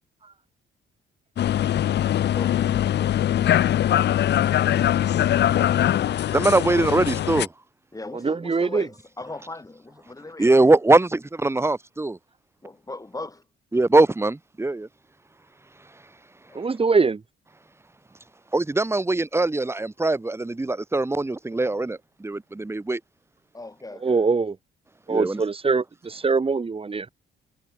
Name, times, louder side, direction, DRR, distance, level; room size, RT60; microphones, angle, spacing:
sound 1, 1.4-7.5, left 11 dB, 60° left, 0.7 m, -22 dB
voice 1, 2.3-3.3 7.9-10.6 12.6-13.4 16.5-16.7 23.5-24.2, left 2 dB, 15° left, 6.5 m, -39 dB
voice 2, 6.3-7.5 10.4-12.2 13.7-14.9 18.5-23.0 25.1-25.4, right 2 dB, 15° right, 1.4 m, -21 dB
voice 3, 8.1-8.9 16.5-17.2 23.9-24.6 25.1-27.1, right 4 dB, 30° right, 2.2 m, -23 dB
cardioid pair, 90°, 20 cm